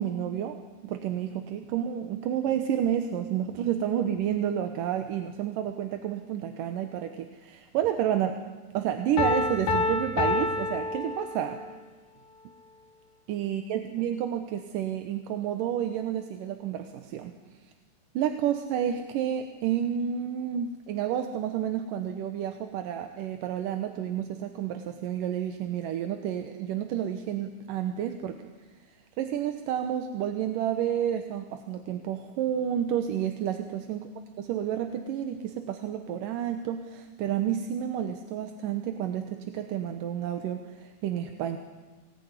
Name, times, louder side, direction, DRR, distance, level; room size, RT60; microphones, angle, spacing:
voice 1, 0.0-8.4 8.7-11.6 13.3-17.3 18.1-28.4 29.2-34.1 34.4-41.6, right 10 dB, 70° right, 7 dB, 2.4 m, -30 dB
Piano, 9.2-11.7, left 2 dB, 65° left, 3.9 m, -28 dB
23.5 x 19.0 x 9.7 m, 1.3 s
omnidirectional pair, 4.6 m